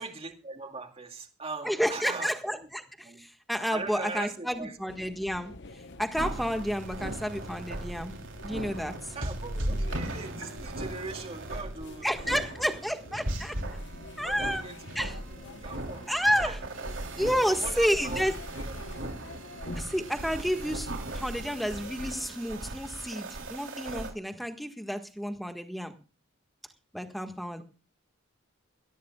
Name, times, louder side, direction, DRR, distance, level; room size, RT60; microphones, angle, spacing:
voice 1, 0.0-2.3 2.6-2.7 3.0-3.3 3.7-4.8 9.1-12.8 13.1-13.3 14.2-15.1 15.5-16.6 17.3-18.3 18.6-18.8 19.2-19.3, right 3 dB, 30° right, 4 dB, 2.2 m, -40 dB
voice 2, 1.6-5.5 6.0-8.1 8.4-8.9 12.0-13.8 14.2-14.6 14.9-15.2 16.1-16.6 17.2-18.3 19.7-25.9 26.9-27.6, equal, ahead, 6 dB, 1.6 m, -30 dB
sound 1, 4.9-22.3, left 2 dB, 55° left, 1.0 m, -47 dB
sound 2, 6.1-24.1, right 1 dB, 65° right, 3.3 m, -37 dB
22.0 x 16.5 x 2.3 m, 0.33 s
head